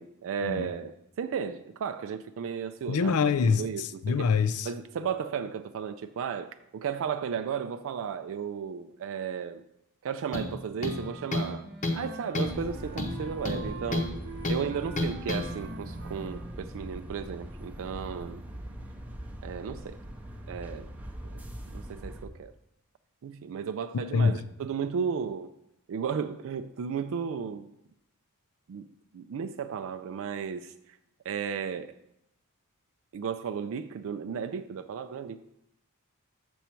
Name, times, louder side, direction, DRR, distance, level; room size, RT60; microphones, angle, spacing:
voice 1, 0.0-4.3 4.6-9.6 10.0-11.7 11.9-14.1 14.5-18.4 19.4-20.0 20.5-20.9 21.3-21.4 21.7-22.5 23.2-25.5 25.9-27.7 28.7-28.9 29.1-30.7 31.3-31.9 33.1-35.4, right 7 dB, 65° right, 0.3 m, -34 dB
voice 2, 2.9-4.7 24.1-24.4, left 5 dB, 75° left, 0.4 m, -25 dB
sound 1, 10.3-10.5 10.8-11.5 11.8-12.1 12.3-12.6 13.0-14.1 14.4-14.6 15.0-15.4, left 2 dB, 35° left, 0.8 m, -30 dB
Wind instrument woodwind instrument, 10.8-16.7, right 3 dB, 50° right, 0.8 m, -45 dB
sound 2, 12.4-22.3, equal, 5° right, 0.6 m, -41 dB
6.8 x 6.2 x 4.4 m
head